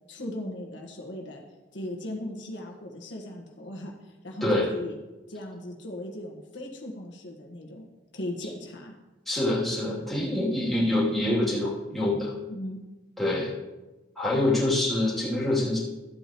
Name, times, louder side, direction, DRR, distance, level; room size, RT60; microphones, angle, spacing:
voice 1, 0.1-1.4 1.7-5.0 5.3-7.9 8.1-8.9 12.5-12.8, left 1 dB, 85° left, 0 dB, 1.5 m, -38 dB
voice 2, 9.3-12.3 13.2-13.5 14.2-15.8, left 1 dB, ahead, -8 dB, 2.8 m, -25 dB
13.0 x 8.4 x 3.0 m, 1.1 s
head